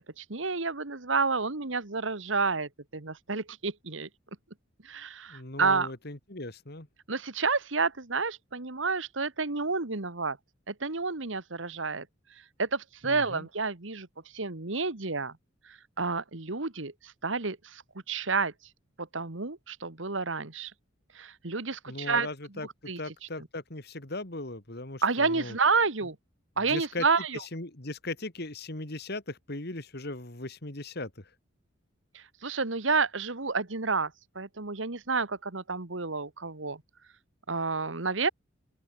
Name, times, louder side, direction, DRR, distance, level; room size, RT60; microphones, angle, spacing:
voice 1, 0.0-4.1 4.8-5.9 7.1-10.4 10.7-12.1 12.6-14.1 14.3-15.4 15.7-17.8 18.1-18.5 19.0-20.7 21.1-22.3 22.9-23.0 25.0-26.2 26.6-27.4 32.1-36.8 37.5-38.3, right 4 dB, 75° right, 1.8 m, -30 dB
voice 2, 5.3-6.9 13.0-13.5 21.9-25.6 26.7-27.1 27.3-31.3, left 2 dB, 55° left, 2.7 m, -38 dB
open air
head